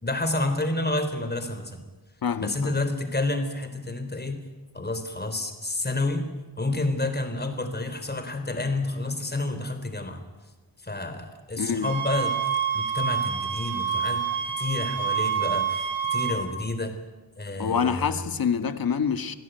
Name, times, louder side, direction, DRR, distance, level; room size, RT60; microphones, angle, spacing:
voice 1, 0.0-1.8 2.4-4.4 4.7-6.3 6.6-10.2 10.8-12.4 12.7-14.3 14.6-16.9 17.4-18.2, left 2 dB, 20° left, 8 dB, 3.9 m, -29 dB
voice 2, 2.2-2.7 11.6-11.9 17.6-19.4, left 6 dB, 55° left, 9 dB, 1.8 m, -26 dB
sound 1, 11.8-16.4, right 7 dB, 45° right, 5.3 m, -27 dB
25.5 x 16.5 x 9.2 m, 1.2 s
cardioid pair, 90°, 43 cm